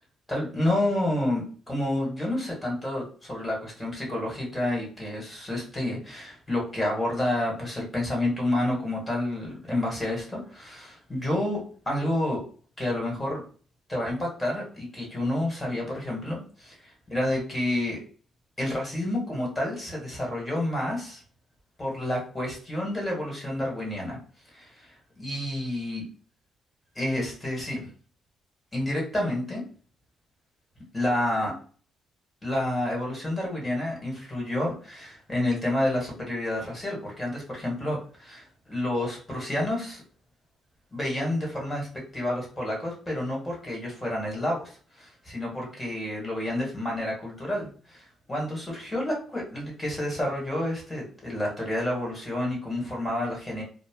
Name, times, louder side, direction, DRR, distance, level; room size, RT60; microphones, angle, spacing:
voice 1, 0.3-11.6 11.8-12.4 12.8-13.4 13.9-16.7 17.1-18.0 18.6-21.2 21.8-24.2 24.5-24.7 25.2-26.0 26.9-27.9 28.7-29.6 30.9-31.5 32.4-40.0 40.9-41.9 42.1-53.6, left 1 dB, 15° left, -2 dB, 1.5 m, -29 dB
2.3 x 2.1 x 3.6 m, 0.41 s
cardioid pair, 90°, 0 cm